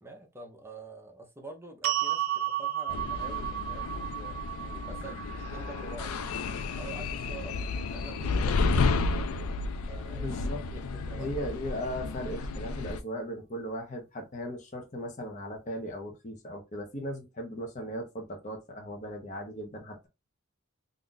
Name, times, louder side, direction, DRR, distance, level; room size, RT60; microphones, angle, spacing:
voice 1, 0.0-3.8 4.2-6.1 6.8-9.5 9.9-10.4 10.7-11.3, right 2 dB, 10° right, 0.6 m, -47 dB
sound 1, 1.8-8.0, right 12 dB, 75° right, 0.4 m, -34 dB
sound 2, 2.9-13.0, left 3 dB, 85° left, 0.4 m, -32 dB
voice 2, 10.1-10.6 11.2-20.1, equal, 35° left, 0.7 m, -37 dB
2.6 x 2.3 x 3.8 m
head